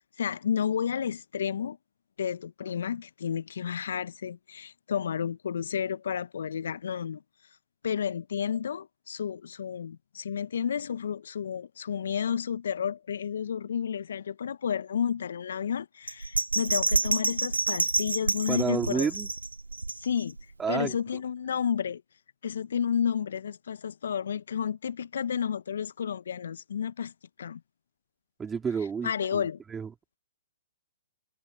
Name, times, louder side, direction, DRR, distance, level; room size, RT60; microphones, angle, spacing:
voice 1, 0.2-1.8 2.2-7.2 7.8-19.1 20.0-20.4 20.7-22.0 22.4-27.1 27.4-27.6 29.0-29.6, left 8 dB, 65° left, 1.3 m, -31 dB
Bell, 16.1-20.4 20.8-20.9, right 3 dB, 85° right, 0.7 m, -28 dB
voice 2, 18.5-19.3 20.6-21.0 28.4-29.9, right 6 dB, 15° right, 2.9 m, -30 dB
figure-of-eight pair, 115°, 0 cm